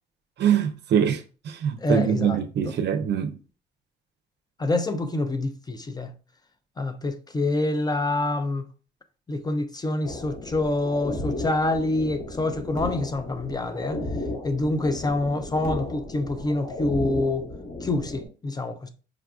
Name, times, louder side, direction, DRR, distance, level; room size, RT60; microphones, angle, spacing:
voice 1, 0.4-3.4, right 8 dB, 60° right, 0.5 m, -24 dB
voice 2, 1.8-2.4 2.7-2.8 4.6-6.1 6.8-8.6 9.3-14.0 14.4-17.5 17.8-18.9, left 2 dB, 20° left, 0.4 m, -26 dB
sound 1, 10.0-18.3, left 2 dB, 45° left, 1.5 m, -34 dB
4.7 x 2.3 x 2.3 m
cardioid pair, 90°, 20 cm